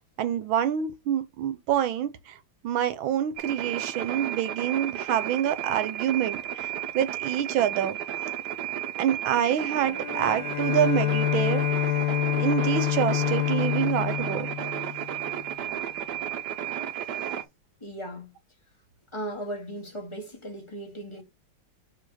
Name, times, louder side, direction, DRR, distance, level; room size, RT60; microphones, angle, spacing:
voice 1, 0.2-8.0 9.0-11.8 12.4-14.7, right 10 dB, 85° right, 1.6 m, -27 dB
sound 1, 3.4-17.4, right 11 dB, 65° right, 1.2 m, -33 dB
Bowed string instrument, 9.9-15.4, left 15 dB, 90° left, 1.6 m, -27 dB
voice 2, 17.8-18.3 19.1-21.2, right 1 dB, 15° left, 1.5 m, -37 dB
5.4 x 3.8 x 4.9 m
omnidirectional pair, 2.2 m